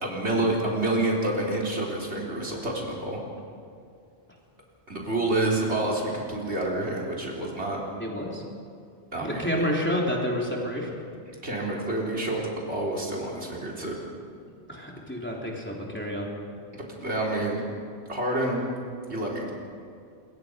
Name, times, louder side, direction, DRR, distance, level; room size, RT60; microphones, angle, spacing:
voice 1, 0.0-3.2 4.9-7.8 9.1-9.5 11.4-13.9 16.7-17.6 18.1-18.6 19.1-19.5, right 2 dB, 80° right, -1 dB, 4.3 m, -28 dB
voice 2, 8.0-8.4 9.2-11.0 14.7-16.3, equal, 10° left, -2 dB, 3.5 m, -29 dB
26.5 x 22.0 x 5.3 m, 2.4 s
omnidirectional pair, 1.1 m